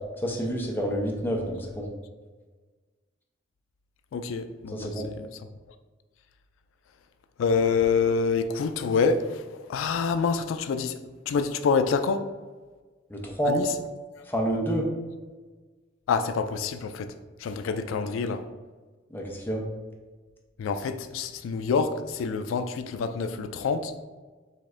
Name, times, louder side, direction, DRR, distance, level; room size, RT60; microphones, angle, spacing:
voice 1, 0.2-1.9 4.7-5.1 13.1-13.6 14.3-14.9 19.1-19.6, right 1 dB, 10° left, 0.6 m, -28 dB
voice 2, 4.1-5.5 7.4-11.0 11.3-12.3 13.4-13.8 16.1-18.4 20.6-23.9, left 5 dB, 90° left, 0.3 m, -27 dB
5.1 x 2.5 x 3.7 m
head